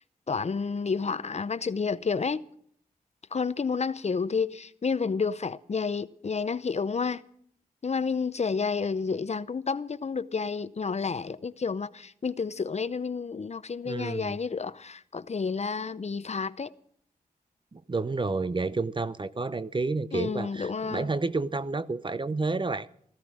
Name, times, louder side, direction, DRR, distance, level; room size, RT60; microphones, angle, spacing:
voice 1, 0.3-2.4 3.3-7.2 7.8-16.7 20.1-21.1, left 5 dB, 45° left, 0.7 m, -30 dB
voice 2, 13.8-14.4 17.7-22.9, right 3 dB, 30° right, 0.8 m, -30 dB
15.5 x 15.0 x 6.2 m
cardioid pair, 55°, 15 cm